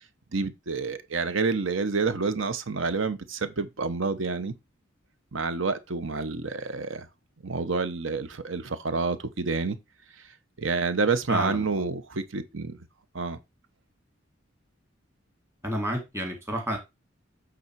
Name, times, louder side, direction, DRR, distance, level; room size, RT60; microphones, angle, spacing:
voice 1, 0.3-4.5 5.3-7.1 7.4-9.8 10.6-12.8 13.1-13.4, right 4 dB, 75° right, 1.0 m, -28 dB
voice 2, 11.3-11.9 15.6-16.8, equal, 15° right, 2.3 m, -30 dB
8.5 x 4.0 x 4.6 m
head